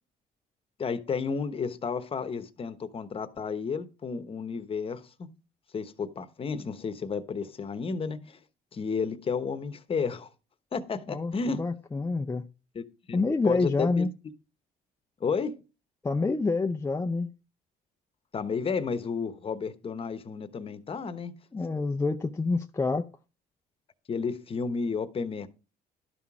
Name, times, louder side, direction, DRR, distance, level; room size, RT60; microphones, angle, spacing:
voice 1, 0.8-5.3 5.7-8.4 8.7-10.3 10.7-11.6 12.7-13.2 13.4-14.1 15.2-15.6 18.3-21.3 24.1-25.5, left 5 dB, 35° left, 1.0 m, -32 dB
voice 2, 11.1-12.4 13.1-14.1 16.0-17.3 21.5-23.1, left 3 dB, 15° left, 0.5 m, -27 dB
12.0 x 5.8 x 4.8 m
cardioid pair, 110°, 17 cm